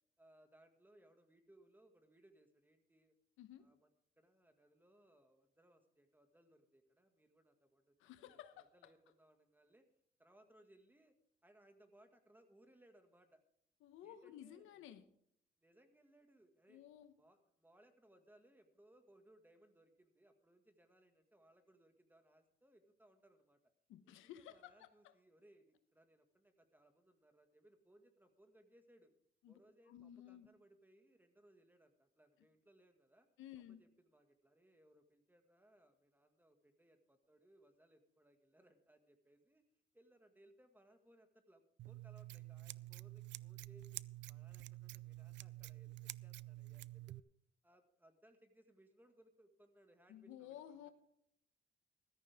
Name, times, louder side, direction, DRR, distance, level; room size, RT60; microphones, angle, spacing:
voice 1, 0.2-3.2 3.6-3.9 4.2-9.9 10.2-11.1 11.4-13.4 14.0-14.8 15.6-16.8 17.2-23.6 24.0-29.1 29.5-33.3 33.5-39.6 39.9-44.0 44.3-47.2 47.6-50.9, right 1 dB, 10° right, 6 dB, 2.0 m, -68 dB
voice 2, 3.4-3.7 8.0-8.9 13.8-15.1 16.7-17.1 23.9-24.7 25.0-25.1 29.4-29.6 29.9-30.5 33.4-33.8 50.1-50.9, left 11 dB, 90° left, 10 dB, 1.1 m, -55 dB
Scissors, 41.8-47.2, right 16 dB, 65° right, 0.4 m, -50 dB
14.5 x 13.5 x 3.6 m, 0.72 s
cardioid pair, 90°, 20 cm